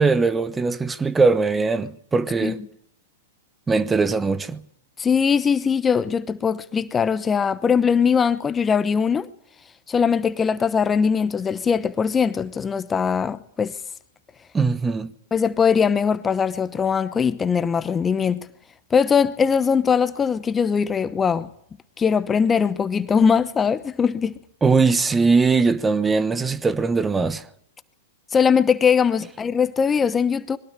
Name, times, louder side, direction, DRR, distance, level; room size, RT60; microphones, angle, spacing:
voice 1, 0.0-2.6 3.7-4.6 14.5-15.1 24.6-27.4, right 4 dB, 15° right, 1.1 m, -20 dB
voice 2, 5.0-9.3 9.9-13.7 15.3-18.5 18.9-21.5 22.0-24.4 28.3-30.6, left 6 dB, 20° left, 1.0 m, -21 dB
22.0 x 19.0 x 9.8 m
hypercardioid pair, 110°, 0 cm